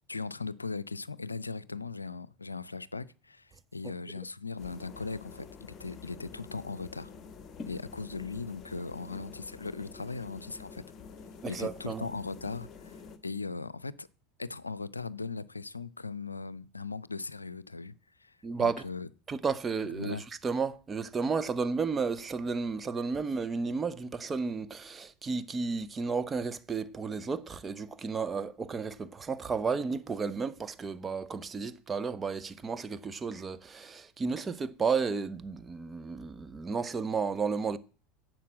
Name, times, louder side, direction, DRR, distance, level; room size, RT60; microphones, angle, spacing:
voice 1, 0.1-7.1 7.7-10.8 11.5-14.1 14.4-18.0 18.2-19.1 19.9-20.2, left 4 dB, 90° left, 0.5 m, -39 dB
sound 1, 4.6-13.2, left 5 dB, 30° left, 1.9 m, -48 dB
voice 2, 11.4-12.1 18.4-18.8 19.3-37.8, right 5 dB, 20° right, 1.0 m, -33 dB
11.0 x 7.8 x 7.6 m
figure-of-eight pair, 75°, 0 cm